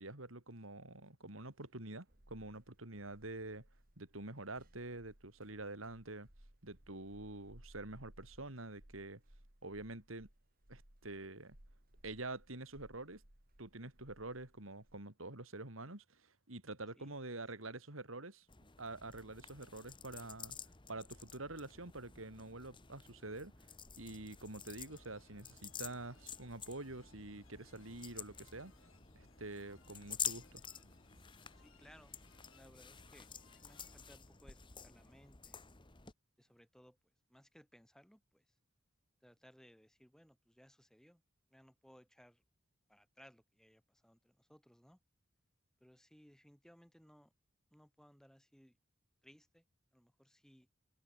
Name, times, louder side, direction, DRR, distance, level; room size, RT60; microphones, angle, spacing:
voice 1, 0.0-3.7 4.0-6.3 6.6-9.2 9.6-10.3 10.7-11.6 12.0-13.2 13.6-18.5 18.8-20.6 20.9-23.5 24.0-28.7 29.2-30.6, right 2 dB, 90° right, 4.1 m, -47 dB
sound 1, 1.5-15.0, right 1 dB, 45° right, 3.1 m, -63 dB
sound 2, 18.5-36.1, left 7 dB, 25° left, 1.5 m, -49 dB
sound 3, 24.6-35.2, left 3 dB, 85° left, 6.4 m, -67 dB
voice 2, 31.6-32.2 32.5-35.7 36.4-37.0 37.3-38.4 39.2-41.2 41.5-42.4 42.9-45.0 45.8-47.3 47.7-48.8 49.2-49.6 49.9-50.7, equal, 5° left, 4.1 m, -63 dB
head